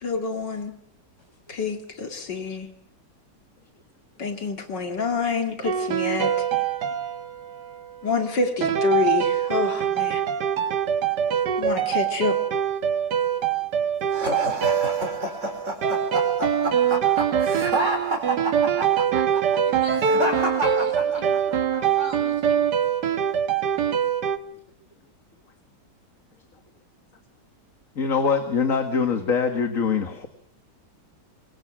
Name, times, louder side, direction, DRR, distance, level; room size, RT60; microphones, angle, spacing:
voice 1, 0.0-0.8 1.5-2.7 4.2-6.6 8.0-10.2 11.4-12.4, left 5 dB, 80° left, 5 dB, 3.1 m, -27 dB
sound 1, 5.6-7.9 8.6-24.4, right 8 dB, 70° right, 1.8 m, -24 dB
sound 2, 14.1-21.6, right 1 dB, 40° right, 5.0 m, -28 dB
voice 2, 19.7-22.6, left 1 dB, 15° left, 6 dB, 4.6 m, -38 dB
voice 3, 28.0-30.3, left 5 dB, 50° left, 7 dB, 2.1 m, -23 dB
26.0 x 24.5 x 6.2 m, 0.64 s
omnidirectional pair, 1.9 m